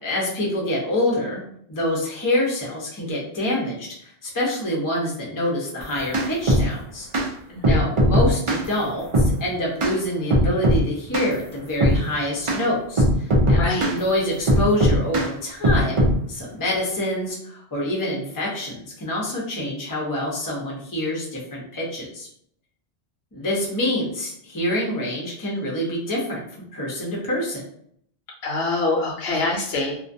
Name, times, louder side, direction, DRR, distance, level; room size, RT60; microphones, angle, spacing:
voice 1, 0.0-1.4 1.7-7.1 7.6-16.0 16.3-22.3 23.3-26.4 26.7-27.6, left 1 dB, 25° left, -3 dB, 0.6 m, -26 dB
sound 1, 5.8-6.7 7.1-7.3 7.6-8.6 9.1-9.3 9.8-10.0 10.3-10.8 11.1-11.3 11.8-12.0 12.5-12.6 13.0-14.0 14.5-15.3 15.6-16.2, equal, 45° right, 0.4 m, -18 dB
voice 2, 13.6-13.9 28.4-29.9, left 2 dB, 75° left, -1 dB, 0.8 m, -24 dB
2.3 x 2.2 x 2.5 m, 0.66 s
omnidirectional pair, 1.1 m